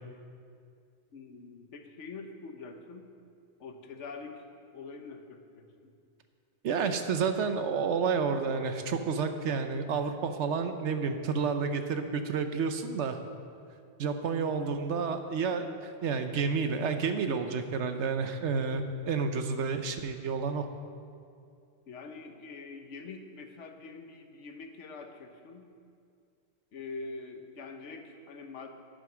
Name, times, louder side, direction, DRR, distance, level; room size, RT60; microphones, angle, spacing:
voice 1, 1.1-3.1 3.6-4.4 4.7-5.7 21.9-25.7 26.7-28.7, left 4 dB, 80° left, 6 dB, 1.3 m, -44 dB
voice 2, 6.6-13.2 14.0-20.7, right 5 dB, 75° right, 8 dB, 1.0 m, -30 dB
10.5 x 9.4 x 6.1 m, 2.3 s
omnidirectional pair, 1.2 m